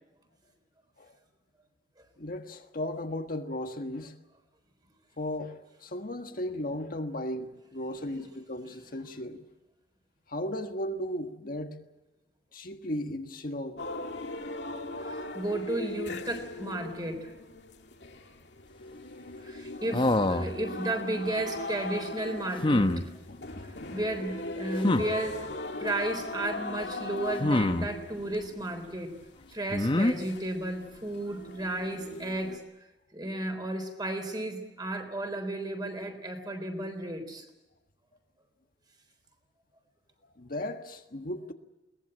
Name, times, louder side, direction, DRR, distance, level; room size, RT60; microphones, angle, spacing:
voice 1, 2.2-4.2 5.2-9.4 10.3-11.8 12.5-13.8 23.3-23.7 40.3-41.5, left 1 dB, 55° left, 1.5 m, -36 dB
sound 1, 13.8-32.6, left 2 dB, 85° left, 2.3 m, -39 dB
voice 2, 15.0-17.3 19.4-23.1 23.9-25.5 25.8-29.1 29.5-32.6 33.1-37.4, right 1 dB, 25° right, 3.8 m, -33 dB
sound 2, 19.9-20.6 22.6-23.0 24.8-25.1 27.4-27.9 29.7-30.1, left 1 dB, 30° left, 0.9 m, -24 dB
22.0 x 19.5 x 8.8 m
head